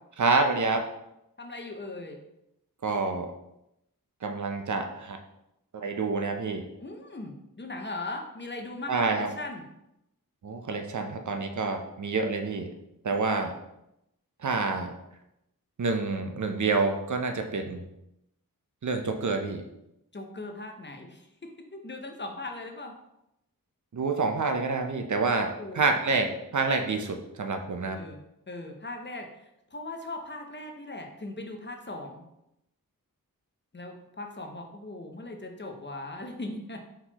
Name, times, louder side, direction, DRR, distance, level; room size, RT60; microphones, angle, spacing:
voice 1, 0.2-0.9 2.8-3.3 4.2-5.2 5.7-6.7 8.9-9.3 10.4-12.7 13.0-13.6 14.4-14.9 15.8-17.8 18.8-19.6 23.9-28.0, right 3 dB, 55° right, 5 dB, 0.6 m, -28 dB
voice 2, 1.4-2.2 6.8-9.7 20.1-22.9 25.6-26.0 27.8-28.2 28.5-32.3 33.7-36.8, left 2 dB, 30° left, 3 dB, 0.7 m, -39 dB
4.3 x 4.0 x 2.9 m, 0.85 s
wide cardioid pair, 60°, 36 cm